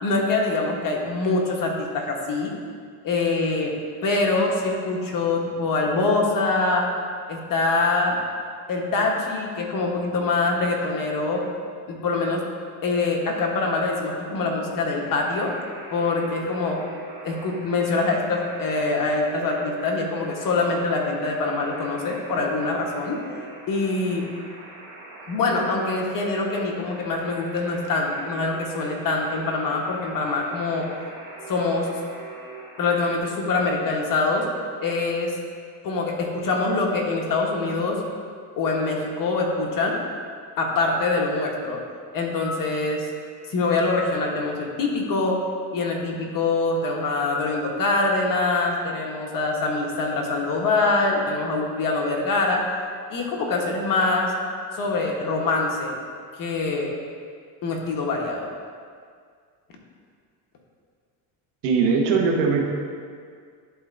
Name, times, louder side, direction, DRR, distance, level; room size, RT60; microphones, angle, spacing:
voice 1, 0.0-2.6 3.0-6.9 7.3-8.2 8.7-11.4 11.9-12.4 12.8-15.5 15.9-16.8 17.2-23.2 23.7-24.3 25.3-30.9 31.5-31.9 32.8-34.5 34.8-35.4 35.8-38.0 38.6-40.0 40.6-41.8 42.1-43.1 43.5-45.4 45.7-52.6 53.1-54.3 54.7-56.0 56.4-57.0 57.6-58.5, left 3 dB, 45° left, 0 dB, 1.2 m, -24 dB
Alarm, 15.0-33.2, right 2 dB, 40° right, 1.7 m, -42 dB
voice 2, 61.6-62.6, right 5 dB, 80° right, 0 dB, 1.1 m, -20 dB
10.5 x 4.3 x 2.6 m, 2.1 s
supercardioid pair, 110°, 48 cm